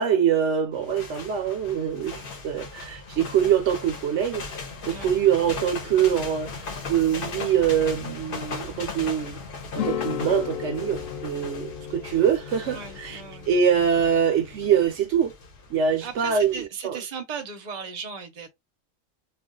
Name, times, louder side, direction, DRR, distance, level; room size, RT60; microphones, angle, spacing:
voice 1, 0.0-4.5 4.9-9.4 9.7-13.2 13.5-15.3 15.7-17.0, right 8 dB, 70° right, 0.9 m, -24 dB
sound 1, 0.7-16.6, left 4 dB, 50° left, 0.8 m, -38 dB
sound 2, 9.7-14.9, left 9 dB, 80° left, 1.0 m, -35 dB
voice 2, 12.7-13.5 16.0-18.5, right 5 dB, 40° right, 0.7 m, -36 dB
2.4 x 2.3 x 3.7 m
omnidirectional pair, 1.3 m